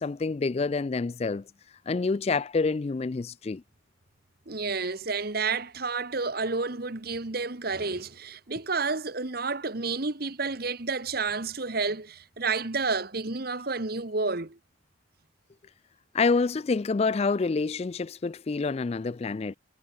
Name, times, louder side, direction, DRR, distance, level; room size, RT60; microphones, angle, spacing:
voice 1, 0.0-1.4 1.9-3.6 16.1-19.5, left 4 dB, 30° left, 0.3 m, -27 dB
voice 2, 4.5-14.6, right 4 dB, 50° right, 1.3 m, -30 dB
head